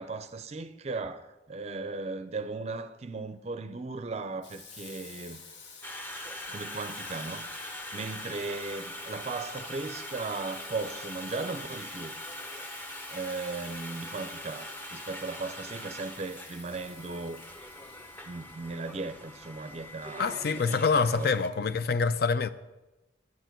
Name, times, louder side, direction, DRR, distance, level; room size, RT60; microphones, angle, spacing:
voice 1, 0.0-5.4 6.5-7.5 7.9-12.1 13.1-17.4 18.2-20.8 21.1-21.3, right 3 dB, 35° right, 0.5 m, -37 dB
Water tap faucet / Sink (filling or washing), 4.4-19.2, left 5 dB, 80° left, 1.2 m, -49 dB
Conversation, 5.8-21.5, equal, 10° left, 0.7 m, -42 dB
voice 2, 20.2-22.5, left 5 dB, 55° left, 0.5 m, -26 dB
10.5 x 9.2 x 4.5 m
head